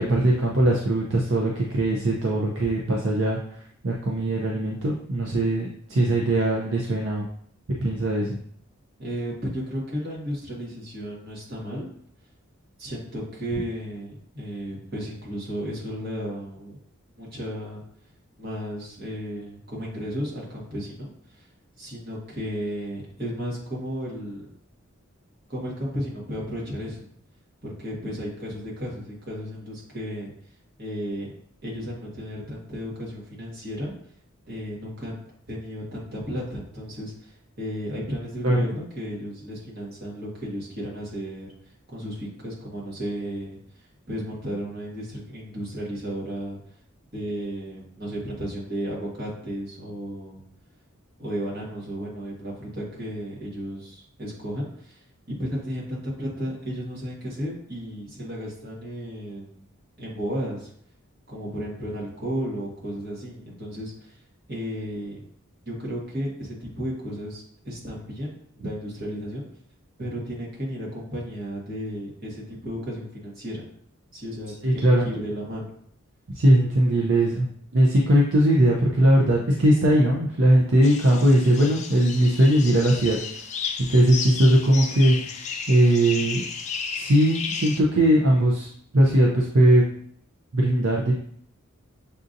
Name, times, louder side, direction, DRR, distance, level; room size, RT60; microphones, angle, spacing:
voice 1, 0.0-3.4 3.8-7.2 7.8-8.4 38.4-38.6 74.6-75.1 76.3-77.5 77.7-83.2 83.8-85.4 85.7-86.4 86.9-88.7 88.9-89.9 90.5-91.1, right 1 dB, 65° right, -2 dB, 0.6 m, -20 dB
voice 2, 9.0-11.9 12.8-16.8 17.2-17.8 18.4-21.1 21.4-21.5 21.8-24.5 25.5-27.0 27.6-30.3 30.8-31.3 31.6-33.9 34.5-35.2 35.5-41.5 41.9-43.6 44.1-46.6 47.1-50.4 51.2-55.0 55.3-59.6 60.0-60.7 61.3-64.2 64.5-65.2 65.6-69.4 70.0-73.7 74.1-75.7, equal, 45° right, -4 dB, 1.4 m, -33 dB
sound 1, 80.8-87.8, left 6 dB, 35° left, 0.3 m, -33 dB
6.7 x 2.6 x 2.5 m, 0.64 s
head